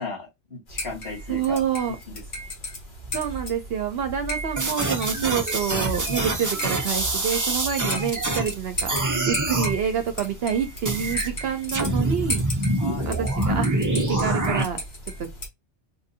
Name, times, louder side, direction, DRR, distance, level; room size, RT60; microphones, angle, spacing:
voice 1, 0.0-1.6 1.8-2.2 12.8-13.1, left 3 dB, 60° left, 2.4 m, -36 dB
sound 1, 0.7-15.5, equal, 45° left, 1.4 m, -35 dB
voice 2, 1.3-2.0 3.1-9.0 9.3-12.4 13.1-14.8 15.2-15.3, right 8 dB, 65° right, 0.8 m, -27 dB
sound 2, 4.6-8.5 8.9-9.7 10.9-11.3 11.7-14.6, right 2 dB, 25° right, 0.5 m, -25 dB
4.2 x 2.6 x 2.6 m
omnidirectional pair, 1.2 m